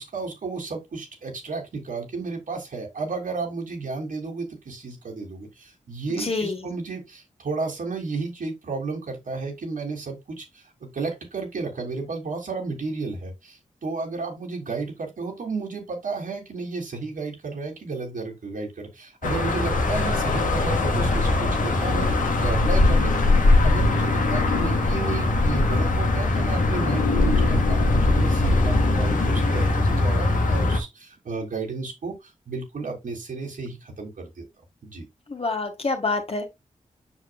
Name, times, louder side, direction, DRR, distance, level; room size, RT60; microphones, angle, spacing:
voice 1, 0.0-10.6 10.9-34.4 34.8-35.0, right 4 dB, 85° right, 3.0 m, -33 dB
voice 2, 6.1-6.7 35.3-36.5, left 3 dB, 45° left, 1.8 m, -27 dB
sound 1, 19.2-30.8, left 2 dB, 85° left, 1.7 m, -21 dB
7.3 x 6.2 x 2.3 m
cardioid pair, 60°, 13 cm